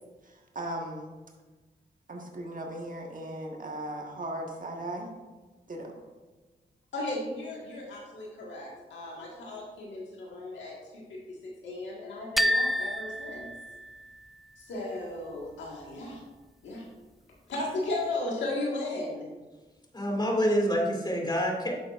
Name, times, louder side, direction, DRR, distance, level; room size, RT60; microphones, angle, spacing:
voice 1, 0.2-1.1 2.1-5.1 5.7-6.0, right 1 dB, 45° right, 1 dB, 1.5 m, -37 dB
voice 2, 6.9-13.5 14.6-16.2 16.6-16.8 17.5-19.3, left 2 dB, 90° left, -2 dB, 1.7 m, -35 dB
sound 1, 12.4-14.3, equal, ahead, 0.3 m, -29 dB
voice 3, 19.9-21.8, equal, 25° left, 0 dB, 2.3 m, -27 dB
9.9 x 6.8 x 2.5 m, 1.2 s
supercardioid pair, 45°, 18 cm